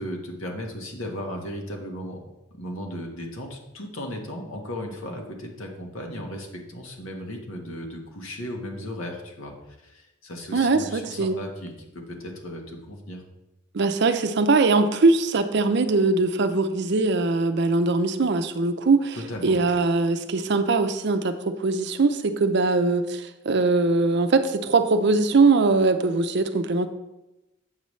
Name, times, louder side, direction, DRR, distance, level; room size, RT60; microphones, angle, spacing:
voice 1, 0.0-2.2 2.6-13.2 19.1-19.6, left 1 dB, 85° left, 2 dB, 1.4 m, -36 dB
voice 2, 10.5-11.4 13.7-19.2 19.4-26.9, right 3 dB, 55° right, 9 dB, 0.5 m, -21 dB
8.0 x 6.7 x 3.2 m, 0.96 s
head